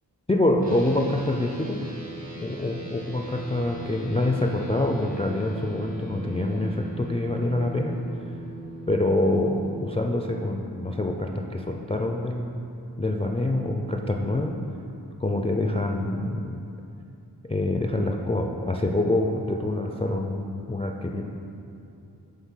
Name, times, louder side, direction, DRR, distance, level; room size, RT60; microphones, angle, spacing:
voice 1, 0.3-1.8 2.4-8.0 8.9-12.7 13.0-14.5 15.2-16.6 17.5-21.3, left 1 dB, 15° left, 2 dB, 0.3 m, -26 dB
sound 1, 0.6-10.0, right 1 dB, 45° right, 1.1 m, -40 dB
7.2 x 3.7 x 5.5 m, 2.7 s
wide cardioid pair, 45°, 39 cm